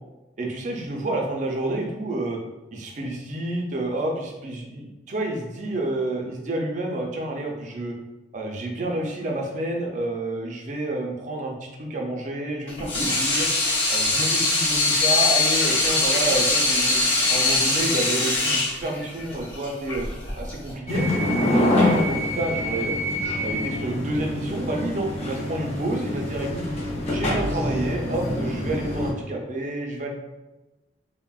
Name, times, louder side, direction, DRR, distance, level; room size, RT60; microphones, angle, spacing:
voice 1, 0.4-2.4 2.7-8.0 8.3-13.5 13.9-17.0 17.3-20.1 20.3-23.0 23.4-26.6 27.1-30.1, right 2 dB, 40° right, 0 dB, 0.4 m, -29 dB
Water tap faucet / Sink (filling or washing), 12.7-20.7, left 2 dB, 80° left, 0.8 m, -22 dB
sound 1, 20.9-29.1, left 1 dB, 35° left, 0.4 m, -25 dB
3.2 x 2.0 x 2.3 m, 1.1 s
head